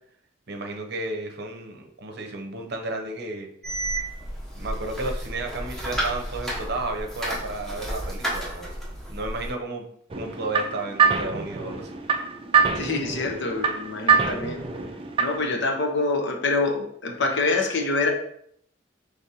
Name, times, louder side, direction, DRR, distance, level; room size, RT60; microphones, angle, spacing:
voice 1, 0.5-3.5 4.5-8.7 9.1-9.9 10.1-11.9, right 2 dB, 60° right, 3 dB, 0.7 m, -33 dB
sound 1, 3.6-9.5, right 1 dB, ahead, 1.1 m, -32 dB
sound 2, 10.1-15.5, right 6 dB, 30° right, 0.4 m, -24 dB
voice 2, 12.8-14.6 15.2-18.1, left 3 dB, 65° left, 3 dB, 0.8 m, -26 dB
5.2 x 3.4 x 2.7 m, 0.67 s
head